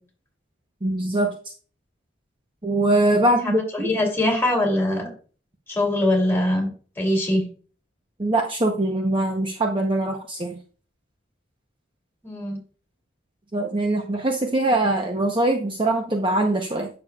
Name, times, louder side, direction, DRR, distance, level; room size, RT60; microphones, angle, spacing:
voice 1, 0.8-1.3 2.6-3.9 8.2-10.6 13.5-16.9, right 1 dB, 25° right, 2 dB, 0.8 m, -22 dB
voice 2, 3.4-5.1 5.7-6.7 7.0-7.4 12.2-12.6, left 1 dB, 10° left, 0 dB, 2.8 m, -22 dB
8.7 x 6.8 x 2.3 m, 0.39 s
head